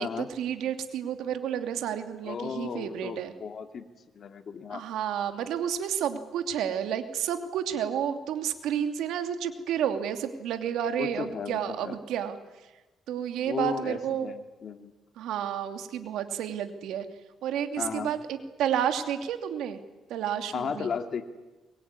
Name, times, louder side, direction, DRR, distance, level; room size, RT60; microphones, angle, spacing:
voice 1, 0.0-3.3 4.7-12.4 13.1-14.3 15.2-17.1 17.4-19.8 20.1-20.9, right 9 dB, 85° right, 7 dB, 2.7 m, -31 dB
voice 2, 2.2-3.9 4.1-4.8 11.0-12.0 13.4-14.9 17.8-18.1 20.5-21.2, left 6 dB, 55° left, 7 dB, 2.7 m, -35 dB
23.5 x 23.0 x 9.8 m, 1.1 s
cardioid pair, 90°, 0 cm